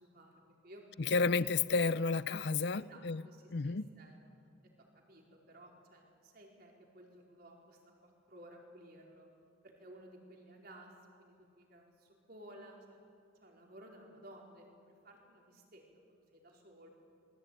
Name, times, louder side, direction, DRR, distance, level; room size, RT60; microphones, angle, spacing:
voice 1, 0.0-0.8 2.7-4.2 4.6-9.3 9.6-13.0 13.4-15.8 16.1-16.9, right 1 dB, 50° right, 4.4 m, -56 dB
voice 2, 1.0-3.2 3.5-3.9, left 4 dB, 55° left, 0.6 m, -31 dB
27.0 x 20.0 x 9.3 m
head